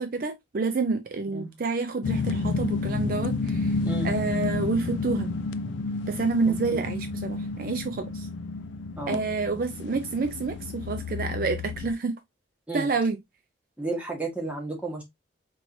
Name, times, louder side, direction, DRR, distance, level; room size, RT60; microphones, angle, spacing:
voice 1, 0.0-3.8 4.0-5.3 6.1-8.3 9.1-12.1 12.7-13.2, right 4 dB, 45° right, 0.4 m, -28 dB
sound 1, 2.0-11.9, left 3 dB, 75° left, 0.4 m, -31 dB
voice 2, 3.8-4.1 6.7-6.8 9.0-9.2 12.7-12.9 13.8-15.0, right 2 dB, 5° right, 1.2 m, -33 dB
4.5 x 3.1 x 2.6 m
head